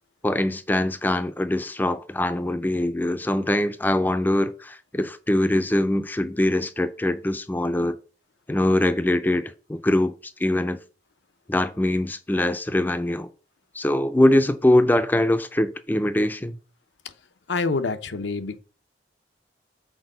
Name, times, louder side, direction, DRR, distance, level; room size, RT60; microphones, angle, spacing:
voice 1, 0.2-8.0 8.5-10.1 10.4-10.8 11.5-13.3 13.8-16.6, left 1 dB, 10° left, 0.4 m, -22 dB
voice 2, 17.5-18.6, left 3 dB, 85° left, 0.7 m, -27 dB
6.2 x 4.5 x 6.6 m
head